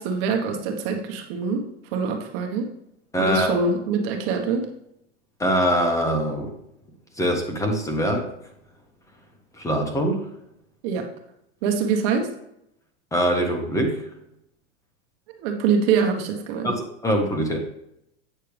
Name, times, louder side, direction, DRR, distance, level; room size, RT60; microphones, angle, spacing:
voice 1, 0.0-1.6 1.9-2.7 3.2-4.7 10.8-11.1 11.6-12.3 15.4-16.7, right 5 dB, 55° right, 4 dB, 1.4 m, -24 dB
voice 2, 3.1-3.6 5.4-6.5 7.2-8.2 9.6-10.2 13.1-14.0 16.6-17.6, equal, 10° left, 2 dB, 1.5 m, -23 dB
8.6 x 6.5 x 3.4 m, 0.78 s
supercardioid pair, 135°, 35 cm